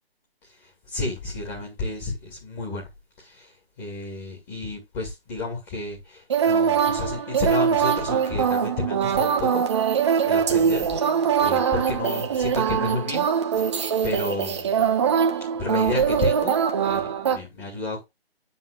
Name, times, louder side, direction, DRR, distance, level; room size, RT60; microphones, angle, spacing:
voice 1, 0.6-2.8 3.2-10.9 11.4-13.2 13.5-13.7 14.0-14.8 15.6-18.0, left 3 dB, 20° left, 2.5 m, -32 dB
sound 1, 6.3-17.4, right 7 dB, 25° right, 1.1 m, -22 dB
9.6 x 3.8 x 5.1 m
figure-of-eight pair, 160°, 31 cm